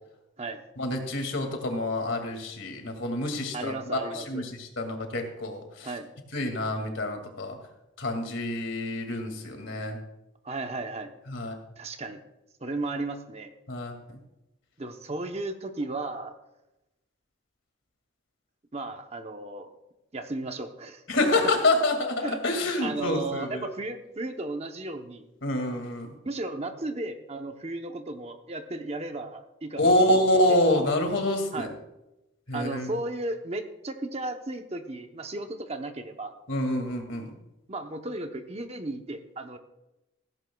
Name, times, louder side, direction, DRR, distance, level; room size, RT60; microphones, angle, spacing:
voice 1, 0.8-5.9 6.3-7.6 8.0-10.0 11.3-11.6 13.7-14.2 21.1-23.7 25.4-26.1 29.8-31.7 32.5-32.9 36.5-37.2, left 1 dB, 70° left, 4 dB, 2.2 m, -27 dB
voice 2, 3.5-4.4 5.8-6.1 10.4-11.1 11.8-12.2 12.6-13.5 14.8-16.4 18.7-19.7 20.1-21.0 22.2-22.4 22.8-25.2 26.2-30.6 31.5-31.7 32.5-36.3 37.7-39.6, right 2 dB, 30° right, 6 dB, 0.8 m, -35 dB
16.0 x 15.5 x 2.3 m, 0.94 s
head